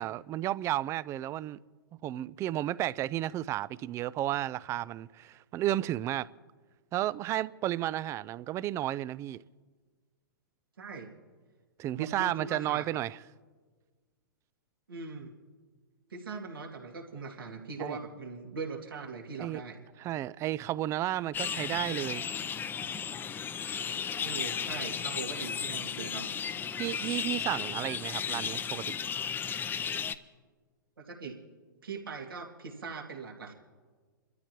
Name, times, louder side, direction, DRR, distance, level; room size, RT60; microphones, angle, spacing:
voice 1, 0.0-1.6 2.0-6.3 6.9-9.4 11.8-13.2 17.8-18.0 19.4-19.6 20.0-22.3 26.8-29.0, right 14 dB, 25° right, 0.3 m, -32 dB
voice 2, 10.8-11.1 11.9-12.9 14.9-15.3 16.1-19.8 24.2-26.3 31.0-31.4 31.8-33.5, right 4 dB, 85° right, 2.4 m, -41 dB
sound 1, 21.3-30.1, left 7 dB, 15° left, 0.6 m, -34 dB
29.5 x 13.0 x 3.1 m
hypercardioid pair, 110°, 11 cm